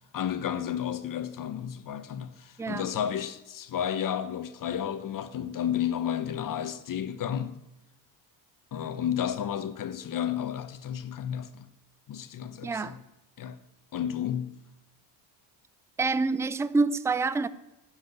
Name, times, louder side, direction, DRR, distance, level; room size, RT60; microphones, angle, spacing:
voice 1, 0.1-7.6 8.7-11.7 12.1-13.0 13.4-13.6 13.9-14.6, left 9 dB, 45° left, 1.0 m, -32 dB
voice 2, 2.6-2.9 12.6-13.0 16.0-17.5, right 3 dB, 5° right, 0.4 m, -27 dB
14.0 x 7.4 x 9.3 m
cardioid pair, 140°, 46 cm